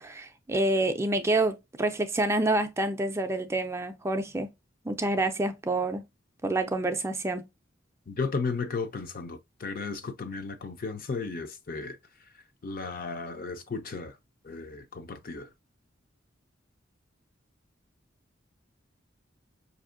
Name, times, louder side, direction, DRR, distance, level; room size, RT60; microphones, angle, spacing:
voice 1, 0.0-4.5 4.9-6.0 6.4-7.4, right 2 dB, 15° right, 0.3 m, -27 dB
voice 2, 8.1-12.0 12.6-14.1 14.4-15.5, left 4 dB, 50° left, 0.5 m, -34 dB
4.9 x 2.7 x 2.5 m
head